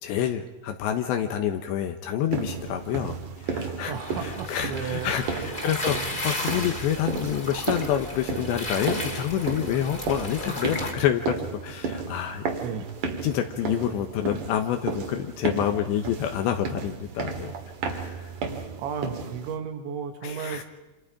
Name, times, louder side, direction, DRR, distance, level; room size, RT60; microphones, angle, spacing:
voice 1, 0.0-3.9 4.5-12.5 13.2-17.5 17.8-18.3 20.2-20.6, left 10 dB, 80° left, 5 dB, 3.4 m, -28 dB
sound 1, 2.3-19.6, right 4 dB, 50° right, 3.2 m, -34 dB
sound 2, 3.9-10.9, left 1 dB, 15° left, 2.1 m, -34 dB
voice 2, 3.9-5.1 12.4-12.9 18.8-20.6, right 7 dB, 90° right, 6 dB, 4.1 m, -34 dB
28.0 x 27.0 x 5.1 m, 1.1 s
omnidirectional pair, 5.2 m